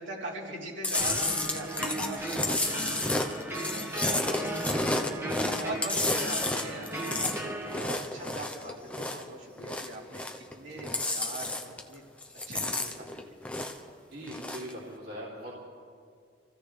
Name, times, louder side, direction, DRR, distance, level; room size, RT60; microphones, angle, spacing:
voice 1, 0.0-3.6 4.0-4.4 4.6-5.3 5.6-7.4 7.8-10.2 10.5-12.0 12.5-13.4, right 1 dB, 70° right, -5 dB, 3.6 m, -42 dB
Chewing mastication, 0.8-9.3 9.6-10.5 10.8-11.9 12.2-13.9 14.2-14.7, left 2 dB, 5° left, 0.8 m, -31 dB
sound 1, 0.9-7.8, right 1 dB, 10° right, 1.4 m, -36 dB
voice 2, 14.1-15.6, equal, 55° right, -6 dB, 3.0 m, -41 dB
27.0 x 16.0 x 3.4 m, 2.2 s
head